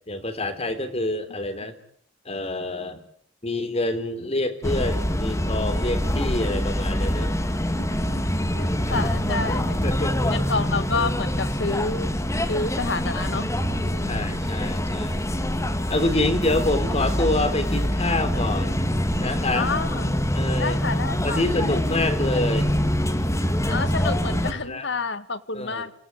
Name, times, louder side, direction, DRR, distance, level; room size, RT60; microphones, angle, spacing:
voice 1, 0.1-1.8 2.3-3.0 3.4-7.4 8.8-8.9 9.8-10.4 14.1-15.2 15.9-18.7 19.2-19.7 20.3-20.8 21.2-22.7 24.5-24.9 25.5-25.9, left 2 dB, 35° left, 9 dB, 3.6 m, -27 dB
sound 1, 4.6-24.5, equal, 15° left, 2.3 m, -25 dB
voice 2, 7.9-8.2 8.5-9.9 10.3-12.1 12.5-13.5 13.8-14.4 16.2-16.5 19.5-20.1 20.6-21.7 23.7-25.9, left 4 dB, 65° left, 12 dB, 1.8 m, -29 dB
28.0 x 18.0 x 9.7 m, 0.63 s
head